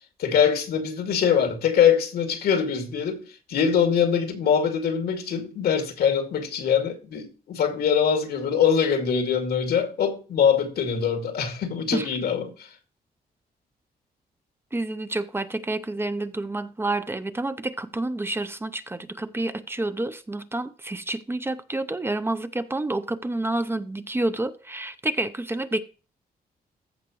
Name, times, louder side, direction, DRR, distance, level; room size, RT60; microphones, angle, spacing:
voice 1, 0.2-12.7, left 7 dB, 90° left, 2.3 m, -23 dB
voice 2, 14.7-25.8, right 2 dB, 15° right, 0.6 m, -29 dB
14.5 x 5.9 x 3.1 m
wide cardioid pair, 135°, 16 cm